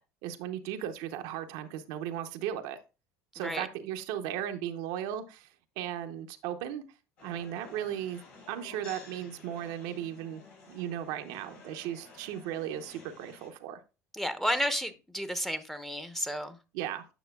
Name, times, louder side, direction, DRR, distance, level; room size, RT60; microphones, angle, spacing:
voice 1, 0.2-2.8 3.3-5.5 5.8-6.8 7.2-8.2 8.5-10.4 10.7-13.8 16.7-17.1, right 10 dB, 70° right, 0.8 m, -36 dB
sound 1, 7.2-13.5, left 3 dB, 80° left, 4.4 m, -52 dB
voice 2, 14.1-16.6, equal, 5° left, 0.9 m, -32 dB
9.0 x 6.5 x 2.3 m
hypercardioid pair, 80°, 8 cm